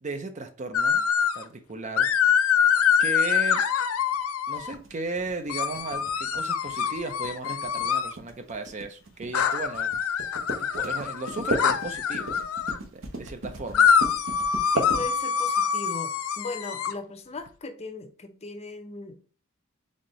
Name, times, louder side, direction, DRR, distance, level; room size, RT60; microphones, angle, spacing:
voice 1, 0.0-1.1 1.3-2.1 3.0-3.6 4.5-9.9 10.6-12.4 12.9-13.9, right 3 dB, 35° right, 0.5 m, -35 dB
sound 1, 0.7-1.4 2.0-4.7 5.5-8.1 9.3-12.8 13.7-16.9, left 7 dB, 80° left, 0.4 m, -25 dB
sound 2, 4.5-15.6, right 1 dB, 65° right, 1.0 m, -35 dB
voice 2, 14.7-19.2, left 2 dB, 30° left, 0.6 m, -38 dB
4.2 x 3.7 x 3.0 m
head